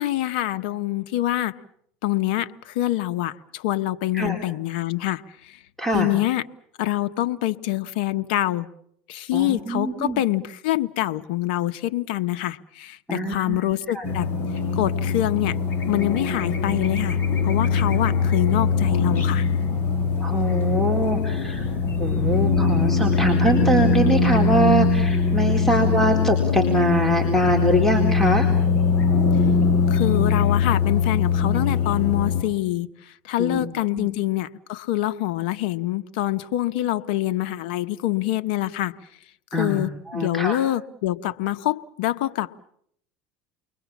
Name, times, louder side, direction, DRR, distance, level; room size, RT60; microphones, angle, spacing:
voice 1, 0.0-1.5 2.0-5.6 5.9-6.4 6.8-8.7 9.1-14.3 14.7-15.6 15.9-17.2 17.4-19.5 29.9-38.9 39.5-42.5, left 15 dB, 75° left, 10 dB, 1.1 m, -25 dB
voice 2, 5.8-6.1 9.3-10.2 13.1-13.7 13.9-14.1 20.2-21.7 22.0-28.5 33.4-33.6 33.9-34.1 39.5-40.6, right 1 dB, 5° left, 3 dB, 4.1 m, -23 dB
sound 1, 14.0-32.4, left 5 dB, 40° left, 6.6 m, -22 dB
30.0 x 22.5 x 7.3 m, 0.70 s
supercardioid pair, 110°, 6 cm